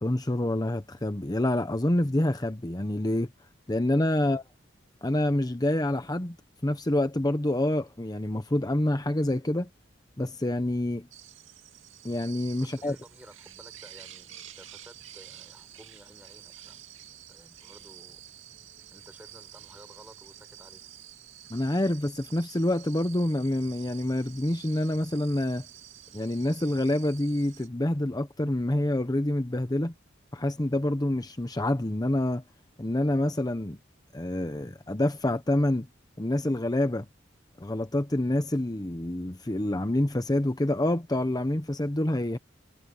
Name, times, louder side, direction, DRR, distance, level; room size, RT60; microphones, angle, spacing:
voice 1, 0.0-3.3 3.7-4.4 5.0-6.4 6.6-9.7 10.2-11.1 12.0-12.9 21.5-25.7 26.1-29.9 30.3-32.4 32.8-33.8 34.1-35.9 36.2-37.1 37.6-42.4, left 1 dB, 20° left, 0.9 m, -27 dB
sound 1, 11.1-27.7, right 12 dB, 75° right, 2.6 m, -49 dB
voice 2, 12.6-18.2 18.9-20.9, right 1 dB, 10° right, 5.8 m, -54 dB
head